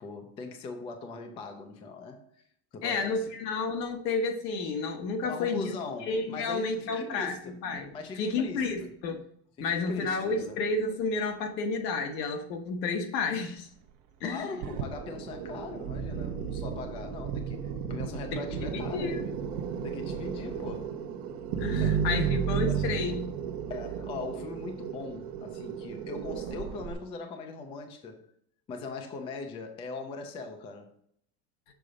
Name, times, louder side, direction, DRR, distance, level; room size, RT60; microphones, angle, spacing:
voice 1, 0.0-2.4 2.7-3.2 5.2-7.6 7.9-8.9 9.6-10.6 14.2-19.3 19.8-21.0 21.7-23.0 23.7-28.3 28.7-30.9, left 3 dB, 15° left, 5 dB, 0.3 m, -40 dB
voice 2, 2.8-5.7 6.1-7.9 8.1-9.2 9.6-13.7 14.2-14.5 18.3-18.4 18.7-19.2 21.6-23.3, left 4 dB, 85° left, 5 dB, 1.3 m, -31 dB
sound 1, 14.6-26.9, right 7 dB, 65° right, 0.9 m, -33 dB
6.7 x 3.8 x 5.0 m, 0.68 s
supercardioid pair, 140°, 48 cm